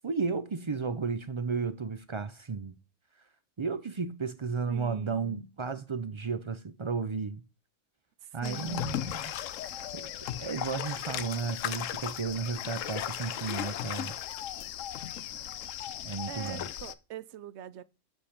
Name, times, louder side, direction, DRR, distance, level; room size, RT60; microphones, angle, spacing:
voice 1, 0.0-2.7 3.6-7.4 8.3-9.3 9.9-14.2 16.0-16.7, right 5 dB, 50° right, 0.3 m, -33 dB
voice 2, 4.7-5.5 8.4-8.9 16.3-17.8, right 9 dB, 70° right, 0.8 m, -43 dB
sound 1, 8.4-16.9, left 11 dB, 85° left, 1.0 m, -36 dB
8.4 x 5.7 x 5.1 m
omnidirectional pair, 1.3 m